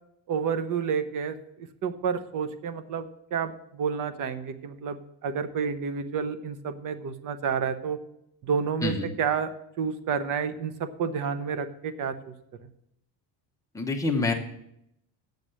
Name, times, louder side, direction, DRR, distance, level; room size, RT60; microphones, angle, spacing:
voice 1, 0.3-8.0 8.4-9.5 9.8-12.3, right 6 dB, 45° right, 11 dB, 0.9 m, -30 dB
voice 2, 13.7-14.3, left 3 dB, 5° left, 0 dB, 1.0 m, -26 dB
8.2 x 6.8 x 7.5 m, 0.76 s
cardioid pair, 170°, 44 cm